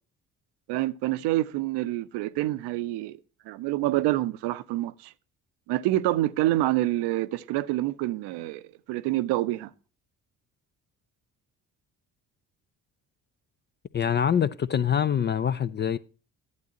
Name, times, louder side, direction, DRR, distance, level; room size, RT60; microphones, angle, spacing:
voice 1, 0.7-3.2 3.5-5.1 5.7-9.7, right 16 dB, 60° right, 0.6 m, -27 dB
voice 2, 13.9-16.0, left 8 dB, 25° left, 0.4 m, -25 dB
11.5 x 8.1 x 2.9 m
figure-of-eight pair, 45°, 45 cm